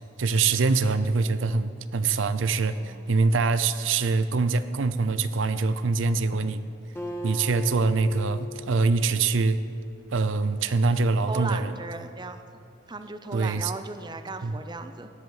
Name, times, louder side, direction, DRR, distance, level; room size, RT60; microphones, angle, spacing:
voice 1, 0.2-6.6 7.2-9.6 10.1-11.8 13.3-13.7 14.4-14.6, right 4 dB, 70° right, 12 dB, 0.5 m, -24 dB
voice 2, 2.8-3.1 6.4-6.5 11.3-12.6 12.9-15.1, right 3 dB, 20° right, 9 dB, 0.6 m, -37 dB
Acoustic guitar, 7.0-10.5, left 1 dB, 10° left, 1.9 m, -39 dB
18.5 x 10.5 x 5.6 m, 2.4 s
head